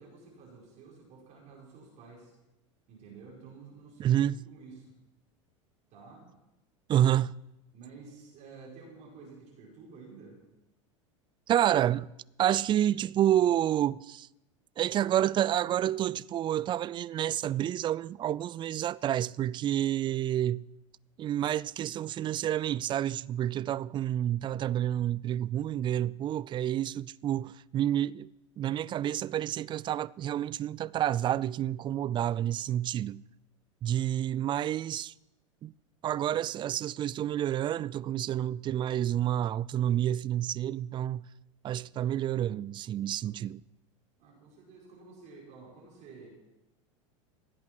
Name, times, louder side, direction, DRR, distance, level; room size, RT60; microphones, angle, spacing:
voice 1, 0.0-2.3 2.9-5.0 5.9-6.3 7.7-10.4 44.2-46.3, right 4 dB, 50° right, 5.2 m, -51 dB
voice 2, 4.0-4.4 6.9-7.3 11.5-12.1 12.4-14.3 14.8-20.7 21.2-28.3 28.6-33.2 33.8-35.1 35.6-35.7 36.0-41.3 41.6-43.6, right 11 dB, 30° right, 0.4 m, -29 dB
16.0 x 8.7 x 6.1 m
hypercardioid pair, 90°, 16 cm